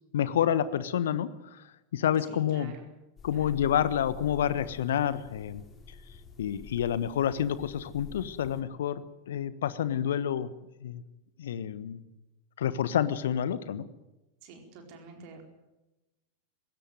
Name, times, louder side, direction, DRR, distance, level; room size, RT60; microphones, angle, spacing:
voice 1, 0.1-1.6 1.9-2.7 3.2-5.6 6.4-10.5 10.8-11.0 11.4-12.0 12.6-13.9, left 9 dB, 60° left, 16 dB, 1.2 m, -28 dB
voice 2, 2.2-2.9 3.3-3.6 14.4-15.4, right 4 dB, 45° right, 3 dB, 4.5 m, -49 dB
sound 1, 3.2-8.6, left 6 dB, 25° left, 3.5 m, -49 dB
20.5 x 17.0 x 9.3 m, 1.0 s
figure-of-eight pair, 90°, 0 cm